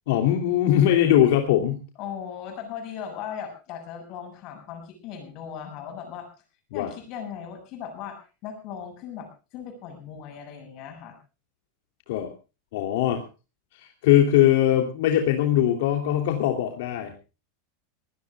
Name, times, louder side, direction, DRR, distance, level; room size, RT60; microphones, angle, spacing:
voice 1, 0.1-1.8 6.7-6.9 12.1-12.3 12.7-13.2 13.7-17.2, left 11 dB, 65° left, 3 dB, 3.0 m, -21 dB
voice 2, 2.0-6.3 6.7-11.2, left 8 dB, 40° left, 6 dB, 7.4 m, -38 dB
23.5 x 18.5 x 2.4 m, 0.33 s
supercardioid pair, 165°, 0 cm